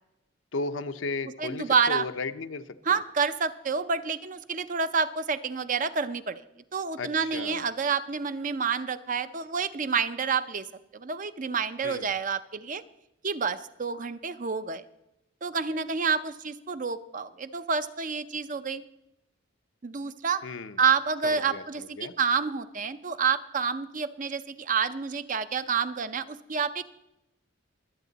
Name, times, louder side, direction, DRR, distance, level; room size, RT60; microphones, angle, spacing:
voice 1, 0.5-3.0 7.0-7.6 11.8-12.1 20.4-20.8 21.2-22.1, left 3 dB, 80° left, 10 dB, 0.7 m, -35 dB
voice 2, 1.4-2.1 2.9-6.4 6.7-10.6 10.9-12.8 13.2-14.8 15.4-18.8 19.8-20.4 20.8-21.8 22.2-26.8, right 5 dB, 40° right, 12 dB, 0.6 m, -28 dB
24.0 x 8.5 x 4.0 m, 0.88 s
head